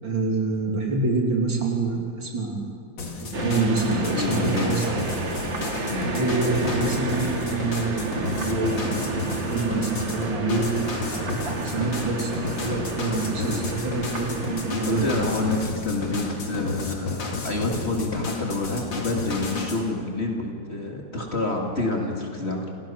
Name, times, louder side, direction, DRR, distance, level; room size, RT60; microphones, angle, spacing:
voice 1, 0.0-2.7 3.1-4.8 6.1-8.9 9.5-10.7 11.1-15.1, right 3 dB, 80° right, -1 dB, 3.9 m, -26 dB
sound 1, 3.0-19.8, left 4 dB, 85° left, 3.1 m, -32 dB
sound 2, 3.3-15.6, right 2 dB, 40° right, 1.7 m, -31 dB
voice 2, 4.0-5.0 5.9-6.1 13.4-13.6 14.7-22.6, left 2 dB, 35° left, 0 dB, 2.7 m, -28 dB
28.5 x 18.0 x 5.9 m, 2.4 s
omnidirectional pair, 2.0 m